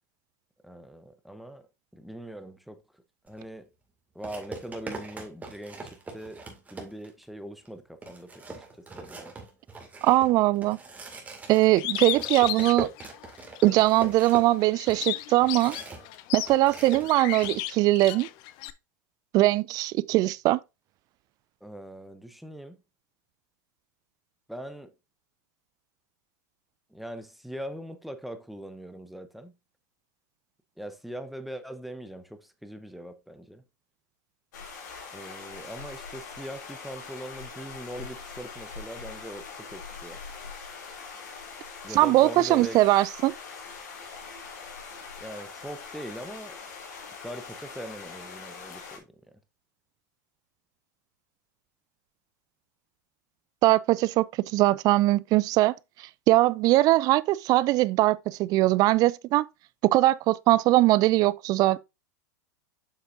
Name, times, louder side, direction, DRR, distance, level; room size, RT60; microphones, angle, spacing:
voice 1, 0.6-1.7 1.9-3.7 4.1-6.4 6.7-9.3 21.6-22.8 24.5-24.9 26.9-29.5 30.8-33.6 35.1-40.2 41.8-42.8 45.2-46.6 47.2-49.0, equal, ahead, 0.9 m, -41 dB
sound 1, 3.3-3.4 4.2-7.2 7.7-7.8 8.0-16.2 16.4-17.6, right 3 dB, 15° right, 2.2 m, -40 dB
voice 2, 10.0-10.8 11.5-12.9 13.6-15.8 16.3-18.3 19.3-20.6 41.9-43.3 53.6-54.2 54.5-59.4 59.8-61.8, right 17 dB, 40° right, 0.4 m, -21 dB
Bird, 11.8-13.8 14.2-18.7, left 16 dB, 50° left, 0.6 m, -34 dB
sound 2, 34.5-49.0, left 5 dB, 70° left, 2.8 m, -42 dB
7.3 x 6.5 x 2.6 m
hypercardioid pair, 100°, 10 cm